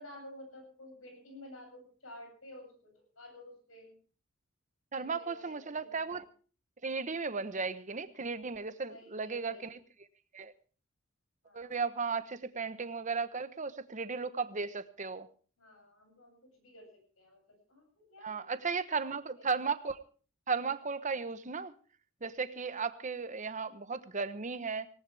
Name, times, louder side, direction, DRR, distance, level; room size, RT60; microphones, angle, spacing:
voice 1, 0.0-4.0 4.9-6.1 8.9-9.7 11.4-11.8 15.6-19.4, left 1 dB, 85° left, 4 dB, 7.9 m, -52 dB
voice 2, 4.9-6.2 6.8-9.8 10.3-10.5 11.5-15.3 18.2-20.0 20.5-21.7 22.2-24.9, right 5 dB, 35° right, 12 dB, 1.0 m, -35 dB
19.0 x 18.0 x 3.4 m, 0.39 s
head